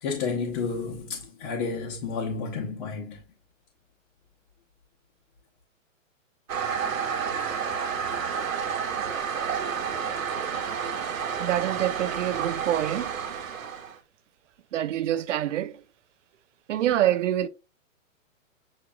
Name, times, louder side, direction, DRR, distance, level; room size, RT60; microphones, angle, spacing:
voice 1, 0.0-3.2, left 5 dB, 45° left, 1.0 m, -31 dB
Toilet flush, 6.5-14.0, right 7 dB, 85° right, 1.0 m, -30 dB
voice 2, 11.4-13.1 14.7-15.8 16.7-17.5, right 12 dB, 65° right, 0.5 m, -26 dB
7.2 x 3.0 x 2.3 m
hypercardioid pair, 150°, 40 cm